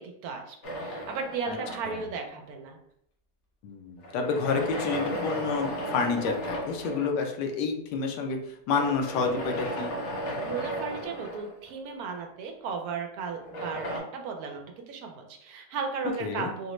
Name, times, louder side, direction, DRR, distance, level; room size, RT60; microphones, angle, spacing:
voice 1, 0.0-2.8 10.4-16.7, right 5 dB, 75° right, 3 dB, 1.0 m, -35 dB
sound 1, 0.6-2.2 4.0-7.2 8.7-11.9 13.4-14.0, equal, 55° left, 0.9 m, -34 dB
voice 2, 3.6-9.9 16.2-16.5, left 5 dB, 85° left, 3 dB, 1.2 m, -29 dB
3.9 x 2.1 x 2.9 m, 0.73 s
omnidirectional pair, 1.7 m